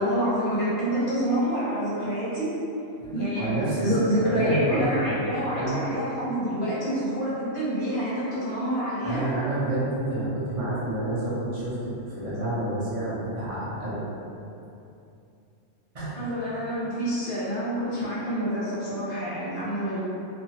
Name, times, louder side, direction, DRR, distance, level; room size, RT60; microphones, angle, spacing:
voice 1, 0.0-2.5 3.1-3.5 3.8-9.3 16.2-20.0, equal, 45° left, -9 dB, 0.8 m, -27 dB
voice 2, 3.0-3.9 4.2-5.1 5.6-5.7 9.0-14.0 15.9-16.3, right 1 dB, 35° right, -9 dB, 0.6 m, -29 dB
2.9 x 2.3 x 2.8 m, 2.7 s
omnidirectional pair, 1.5 m